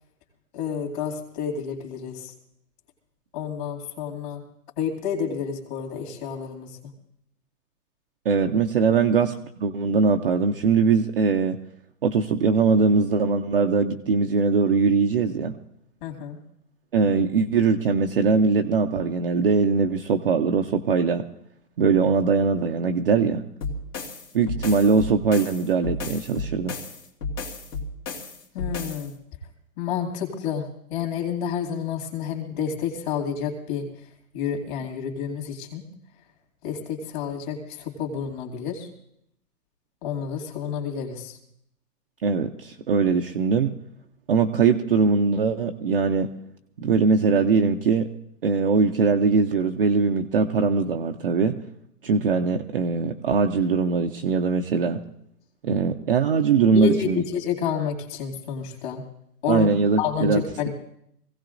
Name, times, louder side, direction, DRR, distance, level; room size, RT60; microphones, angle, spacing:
voice 1, 0.5-2.3 3.3-4.4 4.8-6.8 16.0-16.4 28.5-29.1 29.8-35.8 36.6-38.9 40.0-41.4 56.7-59.0 59.4-59.7 60.0-60.7, left 7 dB, 30° left, 2 dB, 2.4 m, -29 dB
voice 2, 8.3-9.3 9.6-11.6 12.0-15.6 16.9-21.2 21.8-23.5 24.3-26.8 42.2-43.7 44.3-46.3 46.8-48.1 48.4-51.6 52.0-55.0 55.6-57.2 59.5-60.4, right 5 dB, 35° right, 4 dB, 0.6 m, -21 dB
sound 1, 23.6-29.1, left 3 dB, 75° left, 2.7 m, -33 dB
24.5 x 16.5 x 2.5 m, 0.74 s
hypercardioid pair, 145°, 48 cm